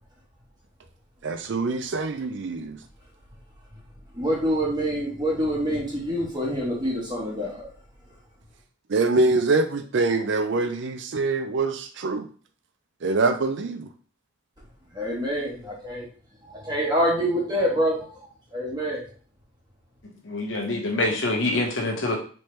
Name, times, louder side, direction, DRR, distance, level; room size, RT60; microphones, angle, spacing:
voice 1, 1.2-2.8 8.9-12.2 13.0-13.9, right 3 dB, 60° right, 7 dB, 0.4 m, -24 dB
voice 2, 4.2-7.5 15.0-16.0 16.7-18.0 18.5-19.0, equal, 20° right, -3 dB, 1.2 m, -25 dB
voice 3, 20.3-22.2, left 2 dB, 60° left, 2 dB, 1.0 m, -25 dB
4.4 x 3.2 x 3.2 m, 0.42 s
head